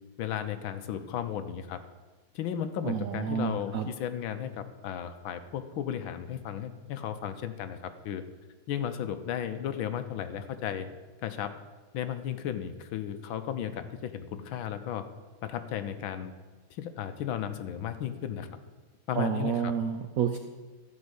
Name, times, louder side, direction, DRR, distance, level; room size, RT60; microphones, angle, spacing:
voice 1, 0.2-1.8 2.3-8.2 8.7-10.9 11.2-11.5 11.9-15.0 15.4-16.3 16.7-18.5 19.1-19.7, left 9 dB, 75° left, 10 dB, 1.6 m, -34 dB
voice 2, 2.8-3.9 19.2-20.4, right 8 dB, 75° right, 6 dB, 0.8 m, -29 dB
13.0 x 5.3 x 8.1 m, 1.3 s
omnidirectional pair, 2.2 m